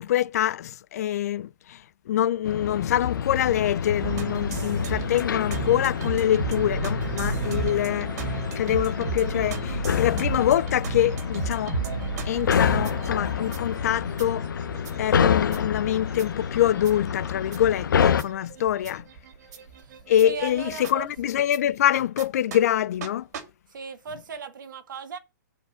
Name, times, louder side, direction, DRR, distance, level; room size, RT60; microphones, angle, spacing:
voice 1, 0.0-11.8 12.3-14.5 15.0-19.0 20.1-23.3, left 11 dB, 50° left, 0.4 m, -25 dB
sound 1, 2.4-18.2, left 7 dB, 90° left, 0.8 m, -28 dB
sound 2, 4.0-21.6 22.2-22.3 22.5-22.6 23.0-23.1 23.3-23.4, right 4 dB, 55° right, 2.5 m, -34 dB
voice 2, 19.8-21.3 23.7-25.2, right 5 dB, 75° right, 1.8 m, -38 dB
9.1 x 5.1 x 6.1 m
hypercardioid pair, 160°, 11 cm